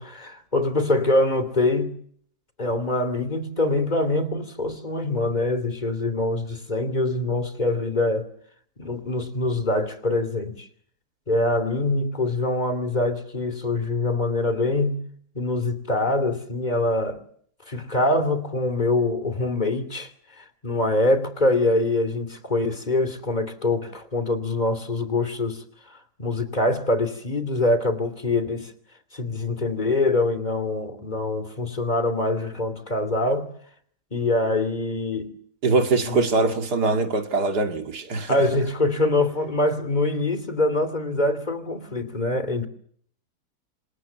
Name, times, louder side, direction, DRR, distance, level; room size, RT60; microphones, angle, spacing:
voice 1, 0.0-1.9 2.6-8.3 8.8-10.7 11.3-15.0 15.3-17.2 17.7-20.1 20.4-25.6 25.9-28.7 29.1-33.5 34.1-35.4 36.0-36.3 38.3-42.7, left 2 dB, 25° left, 3.0 m, -24 dB
voice 2, 35.6-38.5, right 3 dB, 75° right, 2.8 m, -22 dB
28.0 x 26.0 x 7.1 m
omnidirectional pair, 1.7 m